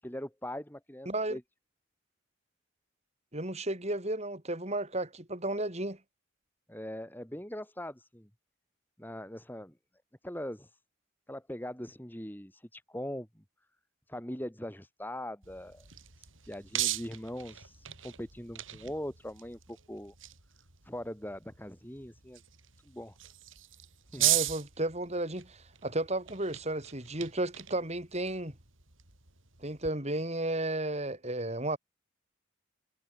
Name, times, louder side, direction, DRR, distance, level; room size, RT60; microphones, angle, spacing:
voice 1, 0.0-1.4 6.7-8.3 9.0-9.7 10.2-10.7 11.3-13.4 14.1-15.9 16.2-20.1 20.8-22.4 22.9-23.2 24.1-24.3, left 1 dB, 10° left, 4.2 m, -41 dB
voice 2, 1.1-1.4 3.3-6.0 24.2-28.5 29.6-31.8, right 1 dB, 35° right, 5.4 m, -33 dB
sound 1, 15.4-29.9, right 14 dB, 85° right, 5.0 m, -38 dB
head